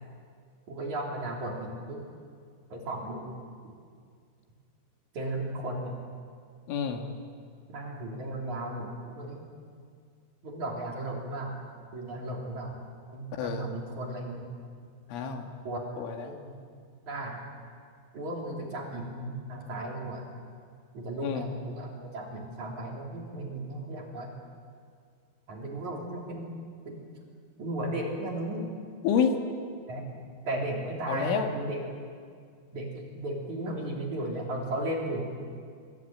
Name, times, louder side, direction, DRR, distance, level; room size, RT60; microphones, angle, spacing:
voice 1, 0.7-2.0 2.7-3.3 3.6-3.7 5.1-6.0 7.7-9.5 10.4-11.6 11.9-12.8 13.1-14.5 15.6-15.8 16.2-16.5 17.1-17.4 18.1-20.3 20.9-24.3 25.5-26.5 26.8-27.1 27.6-28.6 29.9-30.1 30.5-31.8 32.7-35.4, right 1 dB, 40° right, -1 dB, 4.3 m, -35 dB
voice 2, 6.7-7.0 13.3-13.7 15.1-15.5 16.0-16.4 21.2-21.5 29.0-29.4 31.1-31.5, left 7 dB, 75° left, 4 dB, 4.3 m, -28 dB
26.5 x 22.0 x 9.2 m, 2.2 s
omnidirectional pair, 5.7 m